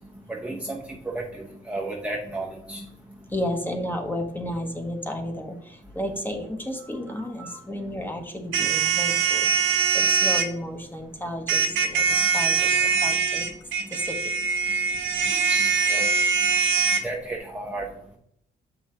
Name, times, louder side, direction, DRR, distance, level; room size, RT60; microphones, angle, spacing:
voice 1, 0.3-0.8 1.0-2.8 7.1-7.6 15.2-16.0 17.0-17.9, right 2 dB, 5° right, -2 dB, 0.8 m, -33 dB
voice 2, 3.3-9.5 9.9-13.4 13.9-14.1, left 1 dB, 10° left, 4 dB, 1.2 m, -32 dB
sound 1, 8.5-10.5 11.5-17.0, right 6 dB, 75° right, 0.9 m, -22 dB
7.2 x 5.5 x 3.0 m, 0.72 s
cardioid pair, 90°, 20 cm